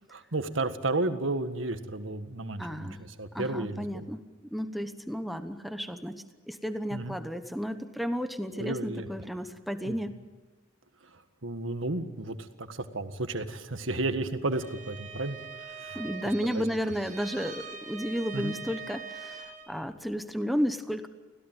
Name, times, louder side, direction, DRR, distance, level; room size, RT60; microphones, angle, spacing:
voice 1, 0.1-4.1 6.9-7.2 8.5-9.1 9.9-10.0 11.4-15.4 15.6-16.0 16.5-16.6 18.3-18.5, right 2 dB, 75° right, 8 dB, 1.7 m, -32 dB
voice 2, 2.6-3.0 3.3-4.2 4.5-10.2 15.9-21.1, equal, ahead, 8 dB, 1.0 m, -33 dB
Bowed string instrument, 14.5-19.8, right 6 dB, 40° right, 2.7 m, -43 dB
25.0 x 17.0 x 9.1 m, 1.2 s
head